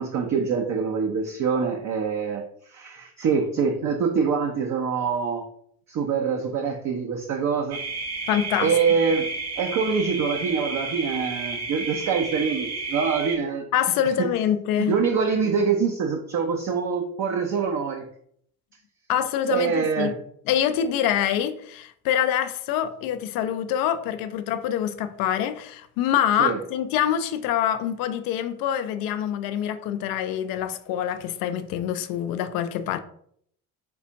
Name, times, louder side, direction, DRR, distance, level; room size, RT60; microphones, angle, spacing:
voice 1, 0.0-5.4 5.9-7.8 8.6-9.3 9.6-13.7 14.2-14.3 14.8-18.0 19.5-20.2 26.4-26.6, right 6 dB, 40° right, 0.6 m, -25 dB
sound 1, 7.7-13.4, right 3 dB, 60° right, 1.6 m, -32 dB
voice 2, 8.3-8.7 13.7-14.9 19.1-20.1 20.5-33.0, left 10 dB, 50° left, 0.5 m, -25 dB
4.0 x 3.4 x 2.8 m
figure-of-eight pair, 50°, 45 cm